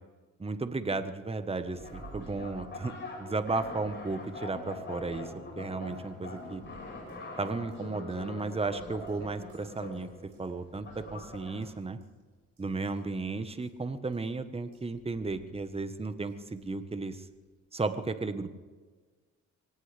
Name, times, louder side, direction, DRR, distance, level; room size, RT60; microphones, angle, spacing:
voice 1, 0.4-6.6 7.4-10.1 10.4-12.0 12.6-17.3 17.7-18.6, right 3 dB, 20° right, 10 dB, 1.2 m, -34 dB
sound 1, 1.7-11.8, left 2 dB, 40° left, 5.4 m, -43 dB
sound 2, 1.7-17.6, right 5 dB, 50° right, 6.8 m, -57 dB
23.5 x 18.0 x 3.4 m, 1.4 s
cardioid pair, 90°, 30 cm